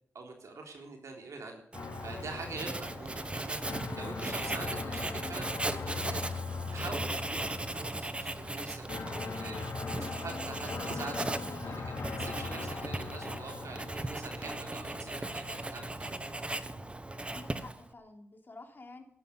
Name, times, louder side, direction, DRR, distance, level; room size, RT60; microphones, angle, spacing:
voice 1, 0.1-1.6 2.0-6.4 6.7-16.1, right 3 dB, 85° right, 2 dB, 3.6 m, -45 dB
sound 1, 1.7-17.7, left 5 dB, 85° left, 3.0 m, -41 dB
Writing, 1.7-17.9, right 2 dB, 20° right, 1.1 m, -38 dB
voice 2, 17.2-19.0, left 3 dB, 40° left, 3 dB, 3.4 m, -50 dB
13.0 x 11.5 x 9.6 m, 0.69 s
wide cardioid pair, 85°, 5 cm